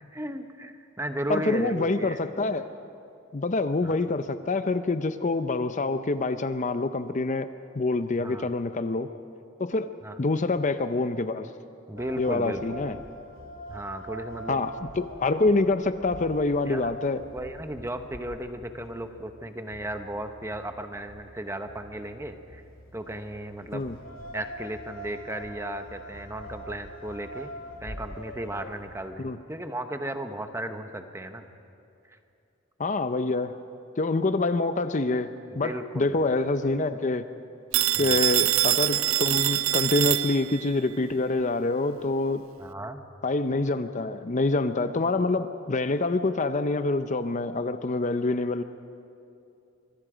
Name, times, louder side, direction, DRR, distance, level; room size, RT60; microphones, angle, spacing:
voice 1, 0.1-2.2 3.8-3.9 8.2-8.5 10.0-10.1 11.9-12.8 13.7-14.6 16.7-16.9 17.3-22.6 22.9-23.9 24.3-27.5 27.8-31.5 32.1-32.2 35.5-36.2 38.0-38.2 42.6-43.0, right 1 dB, 15° right, 7 dB, 1.0 m, -35 dB
voice 2, 1.3-2.7 3.3-7.5 7.7-9.1 9.6-9.9 10.2-11.5 12.2-13.0 14.5-17.2 23.7-24.0 29.2-29.4 32.8-33.5 34.0-35.3 35.6-37.2 38.0-42.4 43.2-48.6, left 3 dB, 35° left, 10 dB, 0.6 m, -26 dB
sound 1, 12.0-29.1, equal, 75° left, 2.3 m, -44 dB
Telephone, 37.7-40.7, right 15 dB, 75° right, 0.5 m, -24 dB
25.5 x 23.0 x 5.0 m, 2.7 s
head